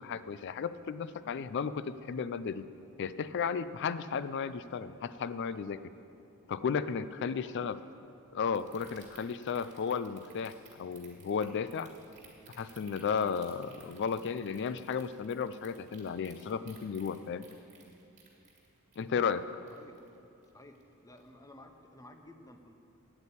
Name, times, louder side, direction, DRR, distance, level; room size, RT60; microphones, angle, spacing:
voice 1, 0.0-2.6 3.0-5.8 6.5-7.8 8.3-11.9 12.6-17.4 19.0-19.5, left 6 dB, 55° left, 14 dB, 0.4 m, -34 dB
voice 2, 7.2-7.5 19.7-19.9 20.5-22.7, left 1 dB, 15° left, 6 dB, 0.7 m, -54 dB
sound 1, 8.5-20.2 20.4-20.8 21.2-21.3, right 5 dB, 35° right, 2.0 m, -57 dB
8.9 x 8.3 x 8.4 m, 2.7 s
head